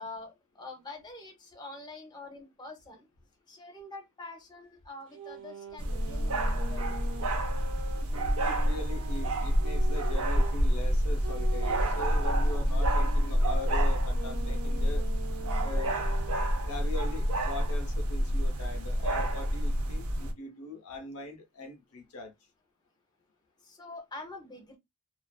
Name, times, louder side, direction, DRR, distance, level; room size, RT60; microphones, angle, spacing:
voice 1, 0.0-3.1 3.5-7.1 23.6-24.8, left 2 dB, 20° left, 0.6 m, -45 dB
sound 1, 5.1-10.6 11.2-16.6, right 3 dB, 60° right, 0.9 m, -44 dB
sound 2, 5.8-20.3, equal, 85° right, 0.6 m, -28 dB
voice 2, 8.4-15.0 15.6-16.0 16.7-22.3, left 2 dB, 85° left, 0.7 m, -41 dB
2.4 x 2.3 x 2.2 m
head